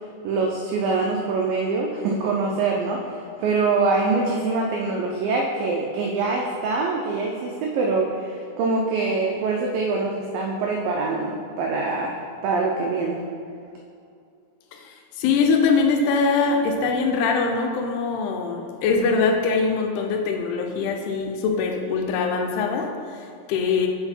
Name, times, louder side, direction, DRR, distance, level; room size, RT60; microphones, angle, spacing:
voice 1, 0.2-13.2, right 3 dB, 90° right, 0 dB, 2.0 m, -24 dB
voice 2, 14.7-23.9, left 4 dB, 85° left, 3 dB, 2.6 m, -23 dB
7.8 x 4.0 x 4.3 m, 2.5 s
omnidirectional pair, 4.7 m